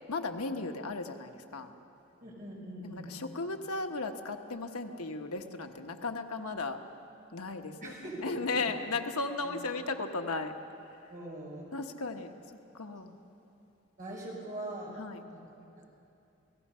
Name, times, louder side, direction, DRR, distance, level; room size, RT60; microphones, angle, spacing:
voice 1, 0.1-1.7 2.8-6.8 7.3-10.5 11.7-12.3 12.7-13.1 15.0-15.2, left 3 dB, 90° left, 5 dB, 1.2 m, -36 dB
voice 2, 2.2-3.1 7.7-8.7 9.4-9.6 11.1-11.7 14.0-15.0, right 1 dB, 35° right, -4 dB, 6.1 m, -42 dB
28.0 x 18.5 x 5.6 m, 2.7 s
head